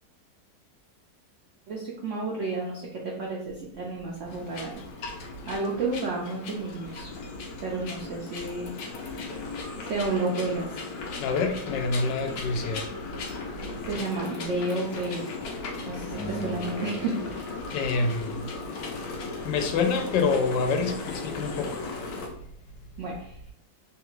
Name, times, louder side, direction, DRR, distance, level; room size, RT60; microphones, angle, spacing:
voice 1, 1.7-4.8 5.5-7.1 7.6-8.7 9.1-9.3 9.8-10.9 13.7-15.3 15.9-17.2 23.0-23.4, right 3 dB, 80° right, 0.6 m, -31 dB
sound 1, 4.3-22.3, left 4 dB, 65° left, 1.0 m, -37 dB
voice 2, 11.2-12.8 17.7-18.5 18.9-19.0 19.4-21.8, left 4 dB, 85° left, 1.3 m, -27 dB
Acoustic guitar, 16.1-18.5, left 1 dB, 50° left, 1.4 m, -41 dB
3.3 x 2.3 x 3.0 m
omnidirectional pair, 1.9 m